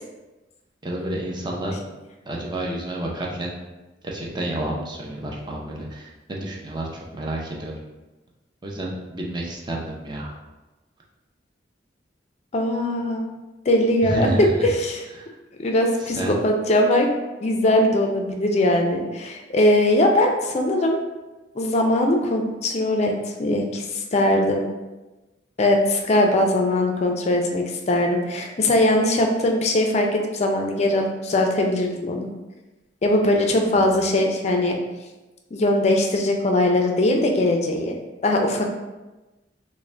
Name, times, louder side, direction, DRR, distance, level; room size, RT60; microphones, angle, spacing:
voice 1, 0.8-1.9 2.3-3.5 4.0-7.8 8.6-10.3 14.0-14.7 15.1-15.3 16.0-16.4 33.5-33.8, right 1 dB, 25° right, -2 dB, 0.5 m, -30 dB
voice 2, 12.5-13.3 13.7-15.0 15.6-17.1 17.4-21.0 21.5-24.6 25.6-32.3 33.0-34.8 35.5-37.9 38.2-38.7, left 1 dB, 35° left, 2 dB, 0.4 m, -20 dB
3.8 x 2.1 x 3.2 m, 1.1 s
head